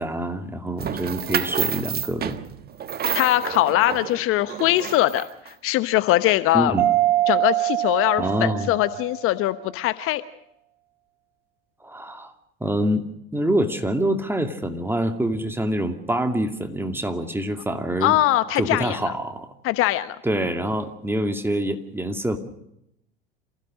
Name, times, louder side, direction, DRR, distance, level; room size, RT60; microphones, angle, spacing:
voice 1, 0.0-2.4 6.5-6.9 8.2-8.7 11.8-12.3 12.6-13.1 13.3-18.2 18.5-19.5 20.2-22.4, right 1 dB, 10° right, 5 dB, 2.4 m, -25 dB
sound 1, 0.8-5.5, right 8 dB, 30° right, 1.4 m, -29 dB
voice 2, 3.1-5.2 5.6-6.7 7.3-10.2 18.0-19.1 19.6-20.2, left 15 dB, 45° left, 12 dB, 1.1 m, -21 dB
Mallet percussion, 6.8-9.3, right 15 dB, 65° right, 5.3 m, -23 dB
28.0 x 16.0 x 6.4 m, 0.79 s
hypercardioid pair, 80°, 29 cm